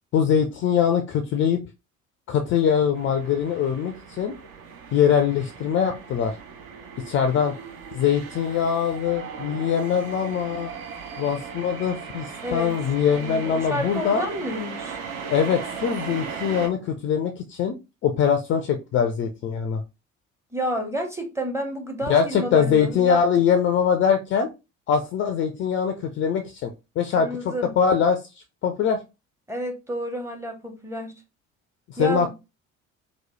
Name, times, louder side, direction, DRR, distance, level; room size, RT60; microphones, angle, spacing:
voice 1, 0.1-1.6 2.3-4.3 4.9-6.3 7.1-7.5 7.9-10.7 11.2-14.2 15.3-17.7 18.0-19.8 22.1-24.5 24.9-28.2 28.6-29.0 31.9-32.3, left 7 dB, 30° left, 0.4 m, -22 dB
sound 1, 2.9-16.7, right 6 dB, 55° right, 0.7 m, -37 dB
voice 2, 12.4-12.8 13.2-15.0 20.5-23.2 27.2-27.7 29.5-31.1 32.0-32.3, equal, 5° right, 0.7 m, -30 dB
2.9 x 2.1 x 3.0 m
figure-of-eight pair, 55°, 40 cm